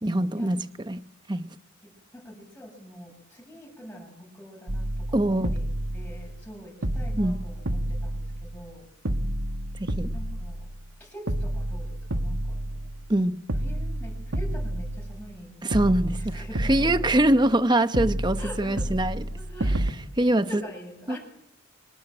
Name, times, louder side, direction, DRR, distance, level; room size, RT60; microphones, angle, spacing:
voice 1, 0.0-1.0 1.3-1.6 5.1-5.6 7.2-7.4 9.8-10.1 13.1-13.4 15.6-19.3 19.6-20.6 21.1-21.2, right 1 dB, 20° right, 0.9 m, -24 dB
voice 2, 1.8-5.7 5.9-8.9 10.1-10.7 11.0-12.9 13.6-15.5 15.9-16.9 18.4-18.9 19.3-21.2, equal, 10° left, 7.7 m, -44 dB
sound 1, 4.7-6.5 6.8-8.7 9.0-10.9 11.3-13.2 13.5-15.4 15.7-17.6 17.9-19.9, right 1 dB, 75° right, 1.7 m, -30 dB
25.5 x 22.0 x 9.0 m
head